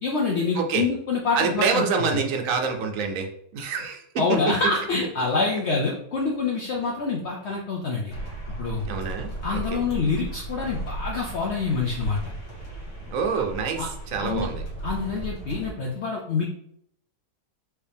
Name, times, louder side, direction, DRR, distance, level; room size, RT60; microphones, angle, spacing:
voice 1, 0.0-1.8 4.2-8.1 8.6-8.8 9.4-12.2 13.8-13.9 14.2-14.5 14.8-16.4, left 4 dB, 60° left, -1 dB, 0.7 m, -26 dB
voice 2, 0.5-0.9 1.3-4.6 8.8-9.8 13.1-14.6, right 5 dB, 65° right, 4 dB, 0.9 m, -27 dB
sound 1, 8.1-15.7, right 2 dB, 80° left, 2.2 m, -35 dB
4.7 x 2.9 x 3.4 m, 0.70 s
omnidirectional pair, 1.7 m